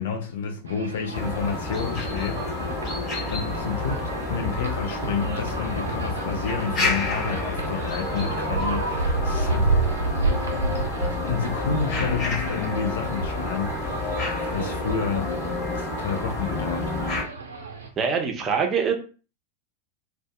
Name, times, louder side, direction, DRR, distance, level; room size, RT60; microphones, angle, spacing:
voice 1, 0.0-2.8 3.3-9.7 11.2-14.2 14.5-15.3 15.7-17.1, left 6 dB, 65° left, 0.5 m, -30 dB
sound 1, 0.7-17.9, right 3 dB, 80° right, 0.5 m, -31 dB
sound 2, 1.1-17.2, left 2 dB, 35° left, 1.2 m, -29 dB
voice 2, 18.0-18.9, right 6 dB, 30° right, 0.6 m, -23 dB
2.6 x 2.2 x 2.2 m
figure-of-eight pair, 95°, 0 cm